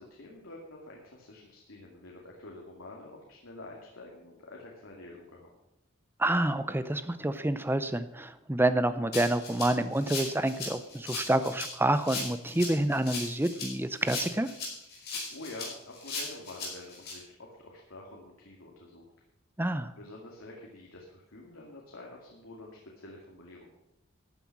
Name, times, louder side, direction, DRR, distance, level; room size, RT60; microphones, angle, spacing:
voice 1, 0.0-5.5 14.9-19.1 20.0-23.7, left 2 dB, 90° left, -2 dB, 2.5 m, -48 dB
voice 2, 6.2-14.5 19.6-19.9, right 1 dB, 10° right, 12 dB, 0.6 m, -28 dB
Rattle (instrument), 9.1-17.1, left 3 dB, 50° left, 5.6 m, -38 dB
13.5 x 9.3 x 6.0 m, 0.89 s
head